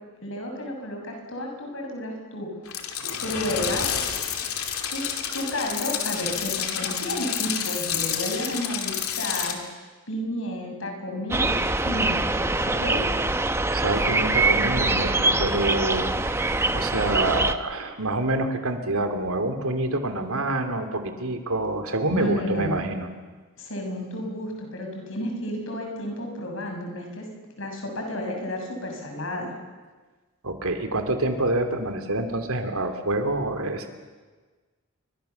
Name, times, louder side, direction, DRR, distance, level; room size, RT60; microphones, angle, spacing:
voice 1, 0.2-2.5 3.2-4.0 4.9-9.6 10.1-11.6 11.8-13.0 22.1-22.8 23.6-27.3 27.6-29.5, left 1 dB, 65° left, 2 dB, 6.7 m, -31 dB
sound 1, 2.6-9.5, left 8 dB, 80° left, 2.8 m, -29 dB
sound 2, 11.3-17.6, right 2 dB, 10° right, 0.8 m, -24 dB
voice 2, 13.7-23.1 30.4-33.9, right 2 dB, 75° right, 7 dB, 3.0 m, -27 dB
28.5 x 24.0 x 7.1 m, 1.3 s
head